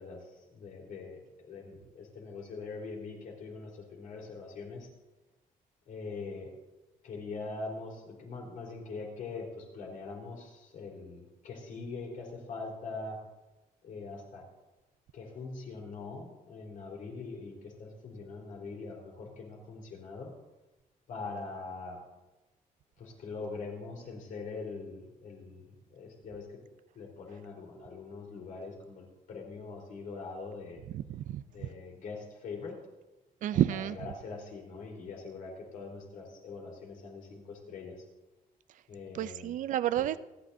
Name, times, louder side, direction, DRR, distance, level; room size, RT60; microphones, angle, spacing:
voice 1, 0.0-4.9 5.9-6.5 7.0-13.2 13.8-14.4 15.1-20.3 21.1-22.0 23.0-26.5 26.9-30.8 31.5-32.8 33.5-38.0 38.9-39.5 40.0-40.1, left 4 dB, 65° left, -1 dB, 4.1 m, -43 dB
voice 2, 30.9-31.7 33.4-34.0 39.1-40.2, right 12 dB, 60° right, 15 dB, 0.5 m, -30 dB
28.0 x 10.0 x 2.7 m, 1.0 s
cardioid pair, 145°, 15 cm